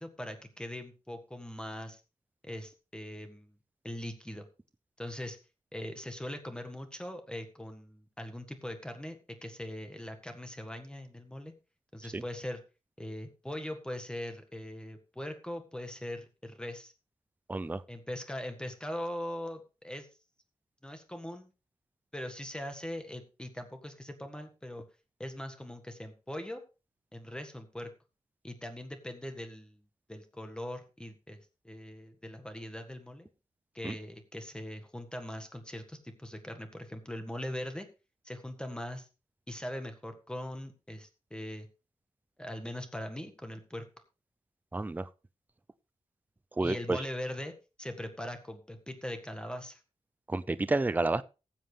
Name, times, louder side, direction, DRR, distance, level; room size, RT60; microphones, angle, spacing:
voice 1, 0.0-2.0 2.4-3.5 3.8-4.5 5.0-5.4 5.7-11.5 11.9-12.6 13.0-16.9 17.9-20.1 20.8-21.5 22.1-24.9 25.2-26.6 27.1-27.9 28.4-29.8 30.1-31.4 31.6-33.3 33.7-37.9 38.2-39.1 39.5-41.7 42.4-43.9 46.6-49.8, left 1 dB, 5° left, 1.7 m, -41 dB
voice 2, 17.5-17.8 33.8-33.9 44.7-45.1 46.6-47.0 50.3-51.2, right 2 dB, 15° right, 0.5 m, -30 dB
18.5 x 7.4 x 3.4 m
wide cardioid pair, 110°, 12 cm